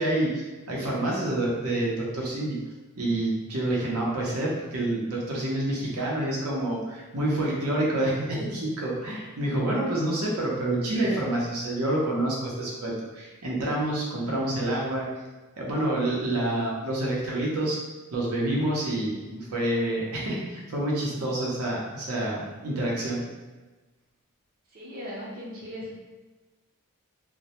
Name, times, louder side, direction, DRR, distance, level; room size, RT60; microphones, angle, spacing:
voice 1, 0.0-2.6 3.0-15.1 15.6-17.8 18.1-23.2, right 1 dB, 85° right, -4 dB, 0.7 m, -28 dB
voice 2, 24.7-25.9, equal, 40° right, -5 dB, 0.6 m, -38 dB
2.1 x 2.0 x 2.8 m, 1.2 s
head